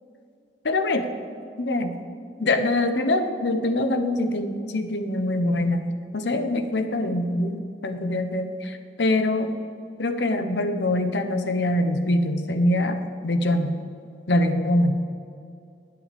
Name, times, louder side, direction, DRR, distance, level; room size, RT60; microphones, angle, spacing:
voice 1, 0.6-1.1 1.6-1.9 2.4-5.8 6.1-9.5 10.0-13.8 14.3-14.9, left 1 dB, 75° left, 7 dB, 0.9 m, -24 dB
19.5 x 7.7 x 3.5 m, 2.5 s
head